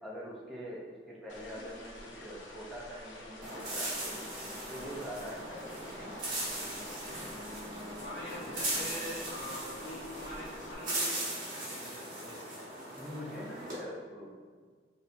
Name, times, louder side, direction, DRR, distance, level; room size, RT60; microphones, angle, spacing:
voice 1, 0.0-4.2 4.7-6.2 13.0-14.3, equal, ahead, -6 dB, 0.7 m, -44 dB
sound 1, 1.3-10.7, left 2 dB, 90° left, 0.7 m, -51 dB
sound 2, 3.4-13.8, right 1 dB, 45° right, 1.4 m, -38 dB
voice 2, 8.0-12.5, left 1 dB, 55° left, -7 dB, 1.1 m, -44 dB
6.4 x 2.6 x 2.7 m, 1.6 s
head